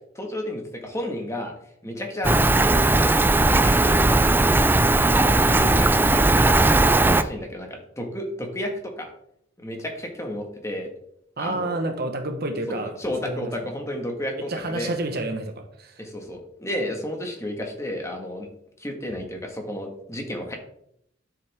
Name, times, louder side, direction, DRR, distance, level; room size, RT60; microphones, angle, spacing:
voice 1, 0.1-1.5 1.8-2.8 3.6-4.8 5.1-6.5 7.0-9.1 9.6-10.9 11.4-11.8 12.7-14.9 16.0-18.5 18.8-20.6, left 1 dB, 15° left, 2 dB, 1.7 m, -32 dB
Rain, 2.2-7.2, right 2 dB, 10° right, 0.4 m, -18 dB
voice 2, 11.4-12.9 13.2-13.7 14.4-16.0, right 2 dB, 55° right, 6 dB, 1.2 m, -29 dB
12.0 x 7.2 x 3.6 m, 0.74 s
head